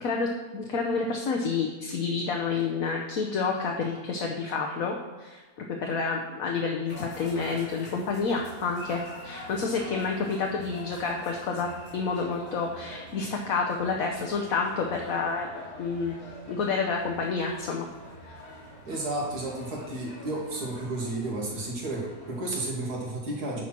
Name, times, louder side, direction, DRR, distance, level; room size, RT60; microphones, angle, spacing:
voice 1, 0.0-16.1 16.5-17.9 18.3-18.4, left 4 dB, 65° left, 1 dB, 1.2 m, -29 dB
sound 1, 6.9-22.6, left 1 dB, 85° left, 3.7 m, -45 dB
voice 2, 18.9-23.6, right 2 dB, 85° right, -3 dB, 2.6 m, -32 dB
9.5 x 4.4 x 5.9 m, 1.3 s
omnidirectional pair, 1.6 m